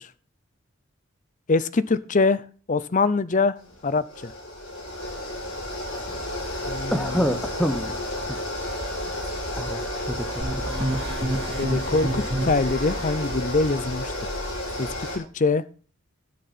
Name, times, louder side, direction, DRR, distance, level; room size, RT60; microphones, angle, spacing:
voice 1, 1.5-2.4 2.7-3.6 3.8-4.3 6.7-6.9 11.6-14.1 14.8-15.6, left 3 dB, 40° left, 0.6 m, -23 dB
sound 1, 3.6-15.2, left 1 dB, 90° left, 6.9 m, -31 dB
voice 2, 6.9-8.0 8.3-8.4 9.5-10.6, equal, 5° left, 1.1 m, -27 dB
sound 2, 10.4-13.1, right 1 dB, 25° right, 3.1 m, -29 dB
17.0 x 6.5 x 4.3 m
head